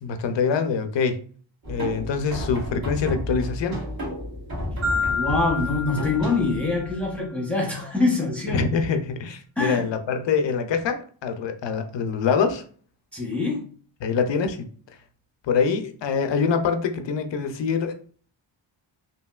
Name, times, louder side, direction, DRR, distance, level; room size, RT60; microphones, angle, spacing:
voice 1, 0.0-1.2 1.7-3.8 8.5-12.6 14.0-14.7 15.5-17.9, left 5 dB, 65° left, 7 dB, 0.6 m, -24 dB
sound 1, 1.6-7.2, equal, 45° right, 1.5 m, -32 dB
Marimba xylophone, 4.8-7.0, left 4 dB, 25° right, 1.0 m, -29 dB
voice 2, 5.1-8.7 9.6-9.8 13.1-13.7, left 3 dB, 5° left, -1 dB, 0.8 m, -24 dB
2.8 x 2.7 x 2.3 m, 0.44 s
wide cardioid pair, 100°, 48 cm